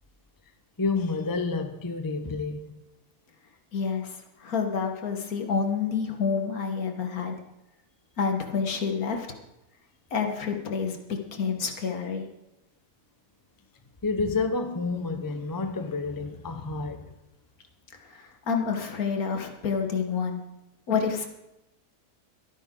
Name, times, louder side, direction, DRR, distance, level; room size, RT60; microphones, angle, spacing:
voice 1, 0.8-2.8 14.0-17.1, left 3 dB, 20° left, 8 dB, 0.6 m, -29 dB
voice 2, 3.7-7.4 8.2-9.3 10.1-11.0 11.3-12.3 18.1-20.4 20.9-21.3, left 5 dB, 65° left, 4 dB, 1.8 m, -28 dB
22.0 x 9.5 x 3.8 m, 0.92 s
omnidirectional pair, 1.7 m